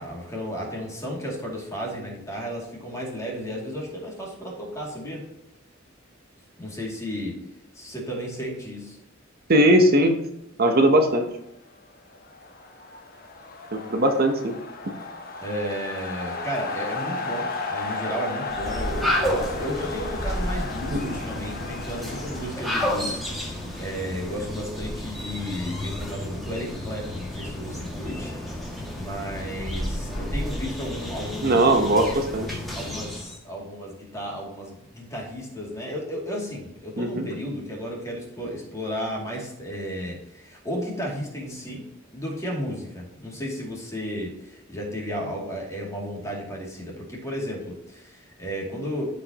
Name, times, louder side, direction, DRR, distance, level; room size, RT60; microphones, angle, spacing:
voice 1, 0.0-5.2 6.6-7.3 7.7-9.0 15.4-28.3 28.9-31.9 32.7-41.9 42.1-49.1, equal, 15° left, -3 dB, 2.5 m, -33 dB
voice 2, 9.5-10.2 10.6-11.3 13.9-14.5 21.0-21.2 31.4-32.6 37.0-37.3, right 1 dB, 50° right, 4 dB, 0.9 m, -19 dB
sound 1, 12.1-24.1, left 3 dB, 50° left, 1.2 m, -35 dB
sound 2, 18.5-33.4, left 1 dB, ahead, 2.1 m, -31 dB
14.0 x 5.2 x 2.9 m, 0.87 s
head